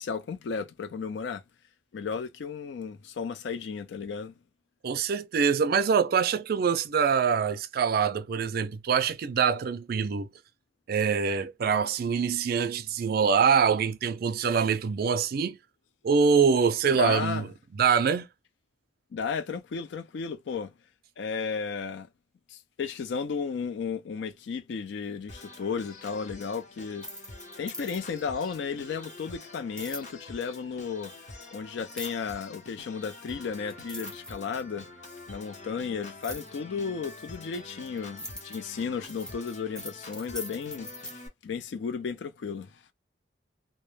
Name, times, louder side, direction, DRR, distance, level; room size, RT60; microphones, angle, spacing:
voice 1, 0.0-1.4 1.9-4.3 16.5-16.6 16.9-17.5 19.1-20.7 21.2-22.1 22.5-27.1 27.6-31.1 31.5-34.8 35.3-40.9 41.4-42.7, left 6 dB, 70° left, 0.4 m, -34 dB
voice 2, 4.8-10.3 10.9-15.6 16.0-18.3, right 6 dB, 55° right, 0.4 m, -24 dB
Organ, 25.3-41.3, left 2 dB, 40° left, 0.8 m, -46 dB
sound 1, 26.9-28.2 29.8-30.1 31.9-32.3 33.3-33.4 33.7-34.8 36.2-36.5 37.3-41.1, left 1 dB, 5° left, 0.6 m, -41 dB
2.1 x 2.0 x 3.1 m
head